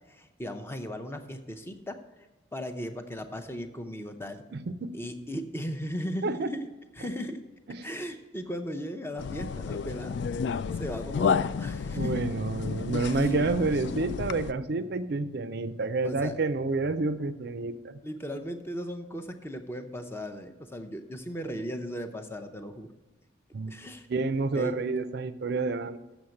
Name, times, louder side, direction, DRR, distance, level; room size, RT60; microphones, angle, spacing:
voice 1, 0.1-2.0 2.5-4.4 4.9-6.6 7.0-7.4 7.8-10.1 10.8-12.2 13.0-13.3 16.0-16.3 18.0-22.9 23.7-24.1 24.5-24.8, equal, 10° left, 7 dB, 0.6 m, -37 dB
voice 2, 4.5-4.9 6.2-6.5 7.7-7.9 12.0-18.0 23.5-23.8 24.1-26.0, right 3 dB, 55° right, 13 dB, 0.5 m, -29 dB
sound 1, 9.2-14.5, left 5 dB, 60° left, 0.3 m, -31 dB
7.2 x 7.1 x 7.7 m, 1.1 s
head